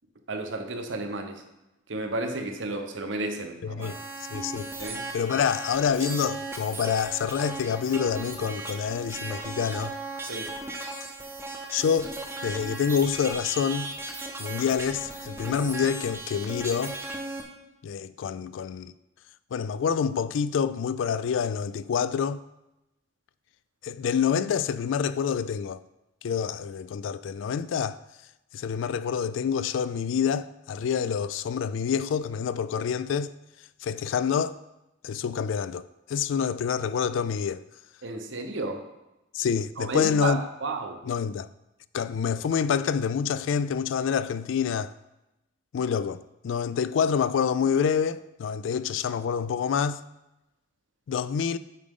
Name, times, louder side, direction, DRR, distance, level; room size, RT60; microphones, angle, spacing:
voice 1, 0.3-1.4 1.9-3.9 4.8-5.0 5.9-6.1 10.3-10.5 38.0-38.8 39.8-41.0, right 2 dB, 80° right, 0.9 m, -32 dB
voice 2, 3.6-4.0 4.3-4.7 5.1-9.9 11.7-12.1 12.4-13.9 14.4-17.0 17.8-18.9 19.5-22.4 23.8-25.8 26.2-28.0 28.5-33.3 33.8-34.5 35.0-37.6 39.3-40.4 41.1-41.5 41.9-44.9 45.7-50.0 51.1-51.6, left 7 dB, 80° left, 0.3 m, -27 dB
sound 1, 3.8-17.4, right 2 dB, 15° right, 0.7 m, -37 dB
8.5 x 4.9 x 3.7 m
head